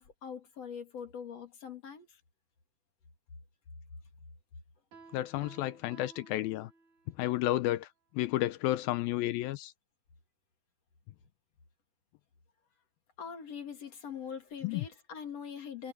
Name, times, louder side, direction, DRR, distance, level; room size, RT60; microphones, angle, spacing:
voice 1, 0.0-2.1 13.2-15.9, left 7 dB, 45° left, 3.2 m, -43 dB
Piano, 4.9-7.2, right 4 dB, 50° right, 4.6 m, -56 dB
voice 2, 5.1-6.7 7.2-7.9 8.1-9.7 14.6-14.8, left 15 dB, 80° left, 2.3 m, -31 dB
omnidirectional pair, 4.6 m